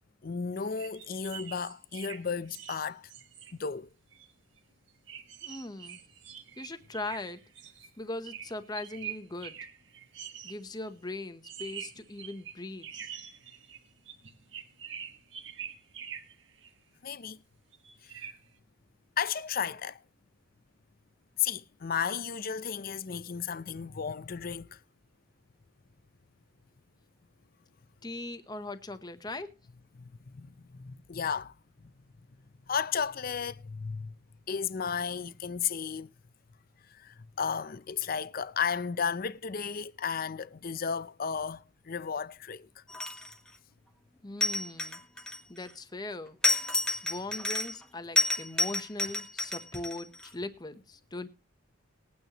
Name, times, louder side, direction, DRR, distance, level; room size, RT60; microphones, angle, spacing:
voice 1, 0.2-3.1 3.6-3.9 17.0-17.4 18.0-18.3 19.2-20.0 21.4-24.8 30.0-31.5 31.8-31.9 32.7-34.1 34.5-36.1 36.9-42.8, left 6 dB, 45° left, 0.6 m, -34 dB
sound 1, 0.6-3.5 4.1-4.3 4.6-4.7 5.1-7.9 8.2-10.6 11.4-16.7 17.7-18.4, right 8 dB, 65° right, 1.6 m, -45 dB
voice 2, 5.4-6.0 6.6-7.4 8.0-9.6 10.4-12.9 28.0-29.5 44.2-45.0 45.5-46.4 47.0-51.3, left 2 dB, 20° left, 1.0 m, -40 dB
sound 2, 42.9-43.5 44.4-45.7 46.4-47.8 48.2-50.3, left 2 dB, 5° left, 1.3 m, -30 dB
20.5 x 9.3 x 3.0 m
head